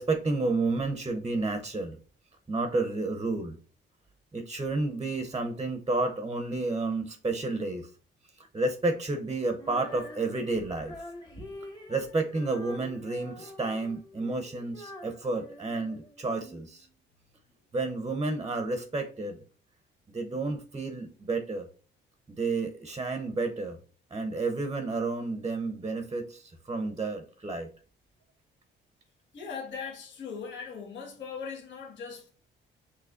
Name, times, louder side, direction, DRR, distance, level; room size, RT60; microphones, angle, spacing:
voice 1, 0.0-2.0 2.5-3.6 4.3-7.9 8.5-11.0 11.9-16.9 17.7-19.4 20.1-21.7 22.3-23.8 24.1-27.7, right 3 dB, 20° right, 0.7 m, -31 dB
Female singing, 9.6-16.6, left 1 dB, 20° left, 1.2 m, -46 dB
voice 2, 29.3-32.3, left 6 dB, 65° left, 1.3 m, -39 dB
5.9 x 3.1 x 2.5 m
cardioid pair, 90°, 20 cm